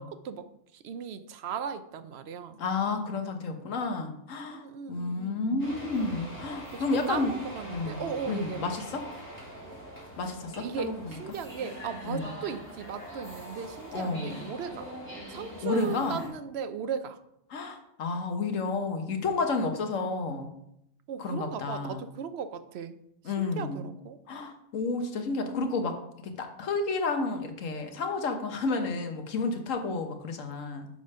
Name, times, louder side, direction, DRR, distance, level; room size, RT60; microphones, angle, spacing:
voice 1, 0.0-2.6 4.5-5.7 6.7-8.7 10.6-14.9 15.3-17.2 21.1-23.0 23.2-24.2 29.9-30.1, right 7 dB, 65° right, 11 dB, 0.8 m, -37 dB
voice 2, 2.6-7.3 7.7-9.0 10.2-11.1 12.1-12.3 13.9-14.4 15.6-16.2 17.5-20.5 21.2-22.0 23.2-23.8 24.3-26.0 26.4-30.9, left 3 dB, 80° left, 6 dB, 1.4 m, -31 dB
sound 1, 5.6-16.3, equal, 10° left, 2.8 m, -43 dB
6.7 x 5.1 x 5.4 m, 0.78 s
omnidirectional pair, 1.3 m